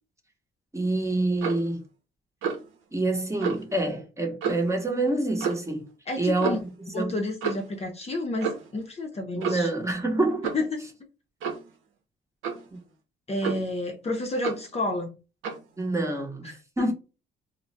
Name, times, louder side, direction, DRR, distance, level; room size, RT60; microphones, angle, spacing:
voice 1, 0.7-1.8 2.9-5.9 6.2-7.2 9.3-10.5 12.7-12.8 15.8-16.5 16.8-16.9, right 2 dB, 15° right, 0.9 m, -27 dB
Clock, 1.4-1.7 2.4-2.7 3.4-3.6 4.4-4.7 5.4-5.7 6.4-6.7 7.4-7.7 8.4-8.8 9.4-9.7 10.4-10.7 11.4-11.7 12.4-12.7 13.4-13.8 14.4-14.7 15.4-15.7, right 6 dB, 90° right, 0.7 m, -31 dB
voice 2, 6.1-6.6 6.9-9.7 10.5-10.8 13.3-15.2 16.4-16.6, left 2 dB, 30° left, 0.6 m, -30 dB
2.2 x 2.1 x 3.9 m
cardioid pair, 90°, 20 cm